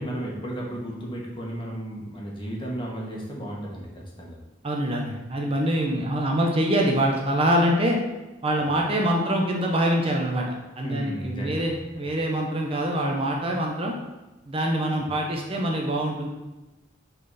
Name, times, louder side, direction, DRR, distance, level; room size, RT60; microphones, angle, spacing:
voice 1, 0.0-4.4 8.6-8.8 10.8-12.1 15.0-15.1, right 1 dB, 25° left, -3 dB, 1.6 m, -34 dB
voice 2, 4.6-8.0 8.4-10.5 10.8-13.9 14.5-16.3, right 1 dB, 30° right, 0 dB, 0.8 m, -24 dB
8.0 x 4.0 x 4.1 m, 1.1 s
head